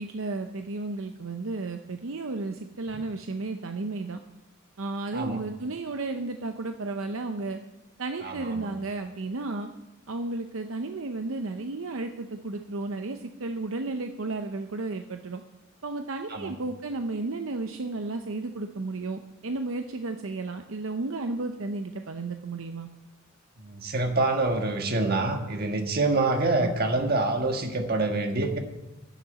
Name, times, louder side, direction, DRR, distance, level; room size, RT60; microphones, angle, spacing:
voice 1, 0.0-4.2 4.8-7.6 8.0-9.7 10.1-15.4 15.8-22.9, right 3 dB, 70° right, 6 dB, 0.7 m, -33 dB
voice 2, 8.2-8.7 16.3-16.5 23.6-28.6, right 2 dB, 45° right, 4 dB, 1.5 m, -26 dB
10.0 x 7.0 x 9.4 m, 0.99 s
head